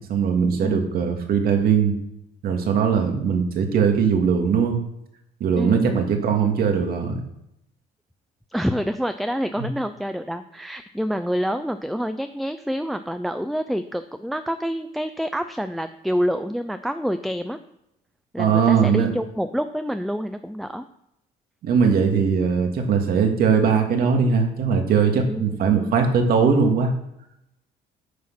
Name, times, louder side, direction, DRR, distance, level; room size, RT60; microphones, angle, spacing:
voice 1, 0.1-2.0 2.4-4.8 5.4-7.2 9.6-9.7 18.4-19.1 21.6-26.9, right 6 dB, 65° right, 4 dB, 2.1 m, -20 dB
voice 2, 0.6-1.1 5.6-6.0 8.5-17.6 18.3-20.8 25.3-26.0, equal, ahead, 9 dB, 0.5 m, -27 dB
9.5 x 6.2 x 6.1 m, 0.82 s
cardioid pair, 110°, 17 cm